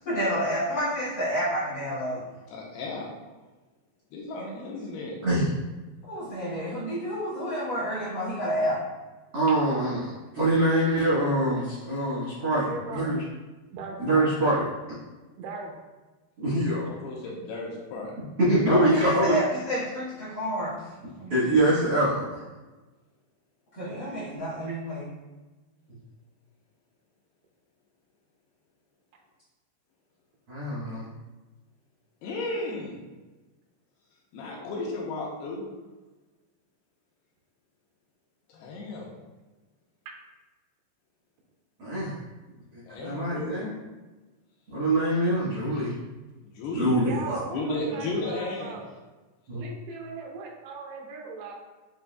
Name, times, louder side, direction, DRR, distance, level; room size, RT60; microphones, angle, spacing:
voice 1, 0.0-2.2 4.4-4.7 6.1-8.8 18.7-20.8 21.2-21.6 23.7-25.1, equal, 65° left, -11 dB, 1.0 m, -29 dB
voice 2, 2.5-3.1 4.1-5.1 16.8-18.2 32.2-33.0 34.3-35.6 38.5-39.1 42.9-43.7 46.4-47.1 47.5-48.8, left 2 dB, 85° left, -3 dB, 2.5 m, -34 dB
voice 3, 9.3-13.2 14.0-14.6 16.4-16.9 18.4-19.4 21.3-22.4 30.5-31.1 41.8-42.2 42.7-43.7 44.7-45.9 46.7-47.4 49.5-49.6, right 1 dB, 70° right, -10 dB, 1.3 m, -24 dB
voice 4, 12.7-13.1 13.7-14.3 15.4-15.8 47.0-48.9 49.5-51.5, right 4 dB, 90° right, 0 dB, 2.7 m, -39 dB
7.6 x 2.6 x 2.2 m, 1.2 s
omnidirectional pair, 4.6 m